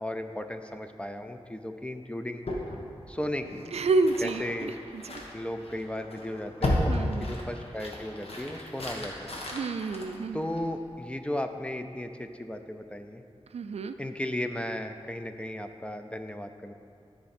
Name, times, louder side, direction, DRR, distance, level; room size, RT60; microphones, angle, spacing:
voice 1, 0.0-2.4 3.1-3.6 4.2-4.7 5.3-9.4 10.3-13.2 14.0-16.7, left 1 dB, 10° left, 7 dB, 0.5 m, -35 dB
sound 1, 2.4-10.9, left 1 dB, 65° left, 1.3 m, -34 dB
voice 2, 3.7-5.2 6.9-7.3 9.5-10.4 13.5-13.9, right 3 dB, 75° right, 10 dB, 0.4 m, -29 dB
13.5 x 4.8 x 4.3 m, 2.5 s
wide cardioid pair, 80°, 11 cm